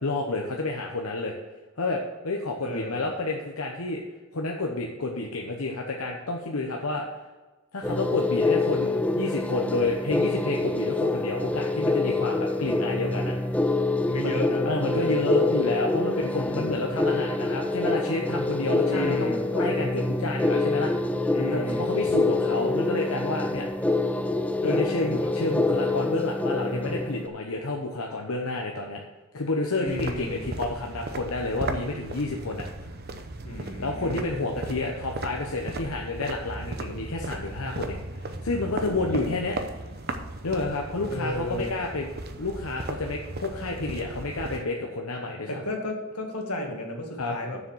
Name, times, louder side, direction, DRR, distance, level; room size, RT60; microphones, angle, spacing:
voice 1, 0.0-1.3 1.8-4.0 4.3-7.1 7.7-13.4 14.2-20.9 21.5-23.7 24.6-29.0 29.3-32.7 33.8-39.6 40.4-42.1 42.4-45.6 47.2-47.3, left 2 dB, 70° left, 1 dB, 1.0 m, -30 dB
voice 2, 2.6-3.1 14.1-15.3 16.2-16.8 18.8-19.5 21.3-21.9 24.6-25.3 29.8-30.4 33.4-34.2 38.8-39.3 41.1-41.7 45.5-47.6, left 1 dB, 90° left, 1 dB, 2.0 m, -33 dB
sound 1, 7.8-27.3, left 2 dB, 5° left, 0.4 m, -26 dB
sound 2, 29.9-44.6, right 2 dB, 45° right, 0.8 m, -36 dB
7.0 x 6.8 x 7.2 m, 1.2 s
head